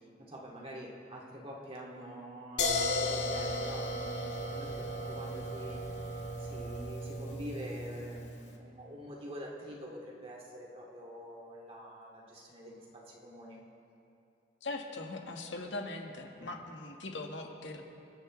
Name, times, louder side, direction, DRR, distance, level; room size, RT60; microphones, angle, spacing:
voice 1, 0.3-13.6 16.4-16.5, equal, 30° right, -3 dB, 2.2 m, -46 dB
sound 1, 2.6-8.4, left 1 dB, 75° left, 1.6 m, -35 dB
voice 2, 14.6-17.8, left 2 dB, 90° left, 2 dB, 1.6 m, -40 dB
28.0 x 11.5 x 3.2 m, 2.7 s
head